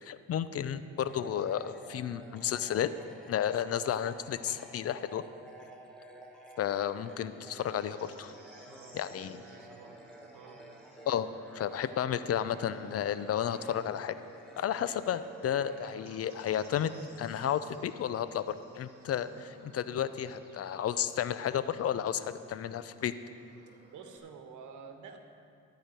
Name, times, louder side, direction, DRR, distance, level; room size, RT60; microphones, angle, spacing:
voice 1, 0.0-2.9 3.3-5.2 6.6-8.3 8.9-9.4 11.1-11.3 11.5-14.2 14.6-16.9 17.2-23.1, left 9 dB, 50° left, 13 dB, 0.5 m, -32 dB
sound 1, 1.0-17.7, equal, 5° left, 1.3 m, -52 dB
Bird / Insect, 6.8-24.2, right 2 dB, 35° right, 3.6 m, -58 dB
voice 2, 8.6-10.1 10.3-10.6 23.9-25.2, right 6 dB, 80° right, 5 dB, 1.3 m, -50 dB
13.5 x 5.0 x 9.0 m, 2.4 s
cardioid pair, 90°, 30 cm